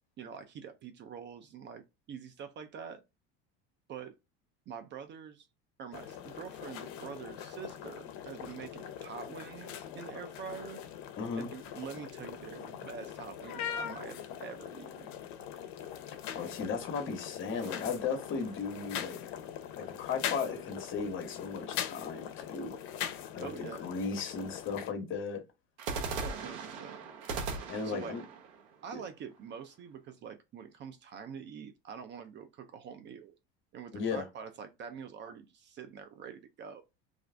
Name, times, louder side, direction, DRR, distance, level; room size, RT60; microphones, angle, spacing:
voice 1, 0.2-3.0 3.9-4.1 4.7-5.5 5.8-10.8 11.4-15.1 23.4-23.8 26.2-27.0 27.8-28.1 28.8-33.3 33.7-36.8, right 7 dB, 35° right, 0.5 m, -45 dB
sound 1, 5.9-24.9, left 9 dB, 65° left, 0.6 m, -42 dB
voice 2, 11.2-11.5 16.1-19.2 19.8-25.4 27.7-28.2 28.9-29.0 33.9-34.2, left 5 dB, 40° left, 1.0 m, -36 dB
sound 2, 17.6-19.0 25.8-29.7, right 4 dB, 70° right, 1.0 m, -40 dB
2.4 x 2.4 x 3.2 m
supercardioid pair, 120°, 31 cm